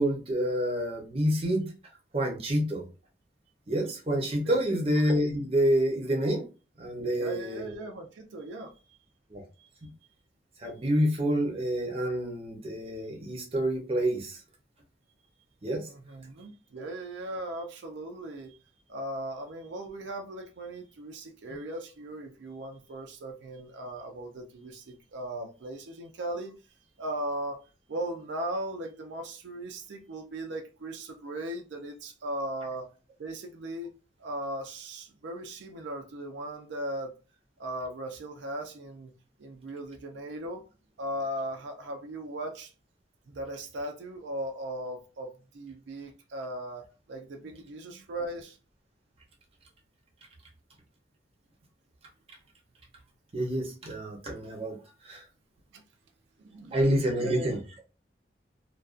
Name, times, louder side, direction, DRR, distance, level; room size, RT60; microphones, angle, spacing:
voice 1, 0.0-1.7 2.1-2.8 3.7-6.4 6.8-7.7 9.3-9.4 10.6-14.4 15.6-15.9 53.3-54.8 55.0-55.2 56.7-57.6, right 1 dB, 30° right, 0.6 m, -28 dB
voice 2, 4.4-4.8 7.1-8.7 9.6-9.7 15.9-18.6 18.9-26.5 27.0-27.6 27.9-32.9 33.2-33.9 34.2-37.1 37.6-39.1 39.4-40.6 41.0-42.7 43.3-48.6 55.7-55.8 56.4-56.8 57.2-57.6, right 1 dB, 75° right, 0.4 m, -38 dB
2.4 x 2.2 x 2.4 m
head